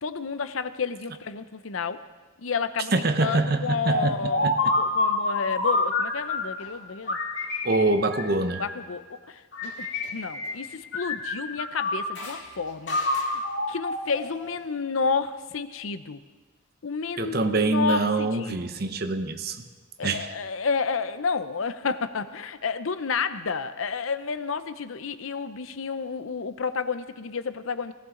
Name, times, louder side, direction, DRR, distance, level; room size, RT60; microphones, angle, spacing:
voice 1, 0.0-2.0 2.4-2.9 3.2-7.2 8.6-13.4 13.7-16.2 16.8-18.6 20.0-27.9, left 5 dB, 85° left, 12 dB, 0.7 m, -31 dB
voice 2, 2.9-4.6 7.6-8.6 17.2-19.6 20.0-20.3, right 2 dB, 50° right, 8 dB, 0.9 m, -25 dB
sound 1, 3.9-6.6 7.1-8.9 9.5-10.7 10.9-12.4 12.9-14.7, left 2 dB, 60° left, 2.1 m, -28 dB
17.5 x 17.0 x 3.9 m, 1.4 s
head